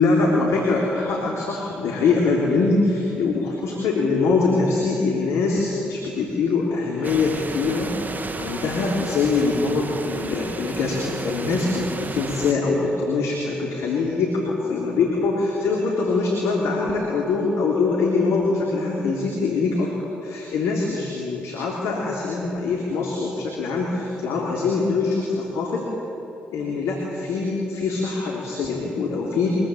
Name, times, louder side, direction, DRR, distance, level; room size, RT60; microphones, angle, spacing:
voice 1, 0.0-8.0 8.4-25.8 26.5-29.5, left 4 dB, 75° left, -2 dB, 3.4 m, -23 dB
sound 1, 7.0-12.5, right 3 dB, 35° right, 2.2 m, -33 dB
24.5 x 21.0 x 8.8 m, 3.0 s
hypercardioid pair, 40°, 5 cm